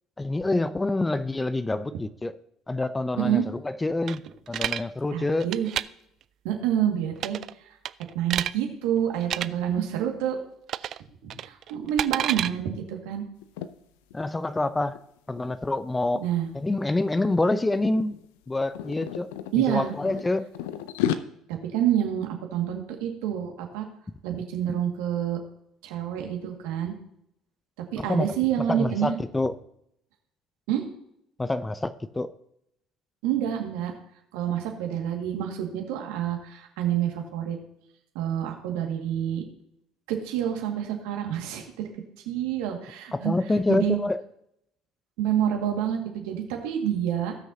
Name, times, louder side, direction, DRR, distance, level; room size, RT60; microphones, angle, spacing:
voice 1, 0.2-2.3 2.7-4.2 4.5-5.5 14.1-14.9 15.3-16.2 16.5-18.2 18.5-19.3 19.7-20.5 28.1-28.3 28.7-29.5 31.4-32.3 43.1-44.2, left 2 dB, 15° left, 0.6 m, -26 dB
sound 1, 4.1-4.8 5.4-5.8 7.2-7.5 7.8-8.5 9.2-9.5 10.7-11.0 11.3-12.5, right 11 dB, 55° right, 0.3 m, -29 dB
voice 2, 5.1-5.7 6.4-7.4 8.1-10.4 10.8-10.9 11.4-13.2 16.1-16.5 19.5-19.9 21.5-23.8 24.2-25.4 25.8-26.9 27.9-29.2 30.7-30.8 33.2-33.9 34.3-37.6 38.1-39.4 40.1-41.9 42.3-43.3 43.7-44.0 45.2-47.4, right 10 dB, 75° right, 2.0 m, -27 dB
sound 2, 13.4-13.7 14.1-14.3 14.6-16.5 17.2-17.5 17.7-19.5 20.1-21.2, left 11 dB, 80° left, 0.6 m, -32 dB
18.5 x 6.2 x 2.8 m
hypercardioid pair, 65°, 0 cm